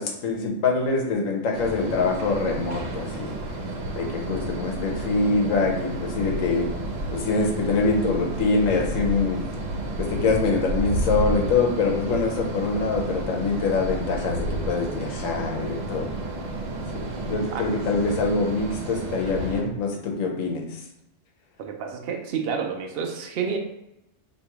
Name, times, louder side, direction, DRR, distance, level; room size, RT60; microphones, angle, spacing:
voice 1, 0.0-3.3 3.9-6.7 7.1-9.4 10.0-16.1 17.2-20.6, left 4 dB, 90° left, 1 dB, 1.2 m, -24 dB
sound 1, 1.5-19.6, right 1 dB, 80° right, 1.2 m, -31 dB
voice 2, 21.6-23.6, right 6 dB, 60° right, 3 dB, 0.7 m, -29 dB
3.0 x 2.9 x 4.5 m, 0.87 s
omnidirectional pair, 1.3 m